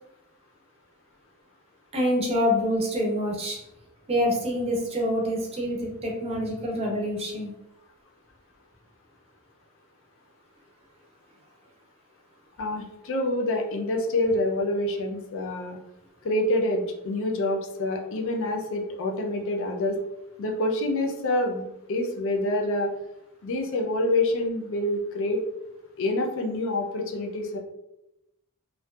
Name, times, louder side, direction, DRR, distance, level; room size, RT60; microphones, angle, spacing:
voice 1, 1.9-3.6 4.1-7.5, equal, 25° right, -1 dB, 0.5 m, -26 dB
voice 2, 12.6-15.8 16.2-20.0 20.4-22.9 23.4-25.4 26.0-27.6, left 1 dB, 60° left, 2 dB, 0.4 m, -27 dB
2.6 x 2.2 x 2.2 m, 0.88 s
head